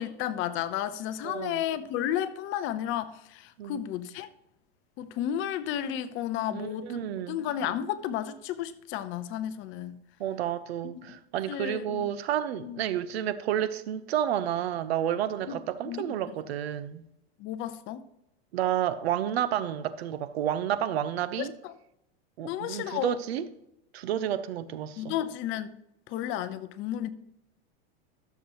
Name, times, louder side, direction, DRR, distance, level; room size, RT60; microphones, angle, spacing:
voice 1, 0.0-4.3 5.0-10.0 10.9-11.2 11.5-12.1 12.6-12.8 15.5-16.2 17.4-18.1 21.4-21.7 22.4-23.2 25.0-25.7 26.1-27.1, left 11 dB, 40° left, 0.8 m, -33 dB
voice 2, 1.2-1.6 3.6-3.8 6.5-7.4 10.2-17.0 18.5-21.5 22.4-23.4 23.9-25.1, right 10 dB, 80° right, 0.9 m, -30 dB
13.0 x 7.0 x 3.0 m
supercardioid pair, 135°, 31 cm